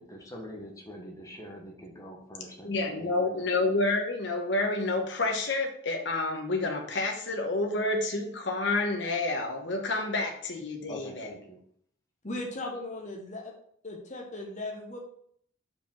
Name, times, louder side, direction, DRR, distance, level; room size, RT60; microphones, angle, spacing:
voice 1, 0.0-3.4 9.6-9.7 10.9-11.6, equal, 15° left, 1 dB, 1.2 m, -44 dB
voice 2, 2.6-11.3, left 2 dB, 60° left, 3 dB, 1.1 m, -29 dB
voice 3, 12.2-13.5 13.8-15.0, left 2 dB, 35° left, 0 dB, 1.1 m, -37 dB
5.1 x 4.7 x 5.6 m, 0.65 s
head